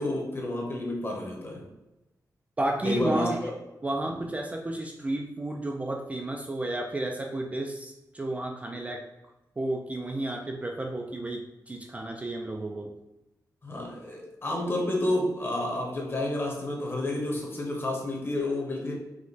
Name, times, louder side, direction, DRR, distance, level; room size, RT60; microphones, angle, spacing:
voice 1, 0.0-1.6 2.8-3.5 13.6-18.9, left 1 dB, 35° left, -1 dB, 1.0 m, -30 dB
voice 2, 2.6-3.4 3.8-9.0 9.6-12.9, right 1 dB, 20° right, 1 dB, 0.3 m, -32 dB
4.9 x 2.2 x 4.0 m, 1.0 s
wide cardioid pair, 160°, 7 cm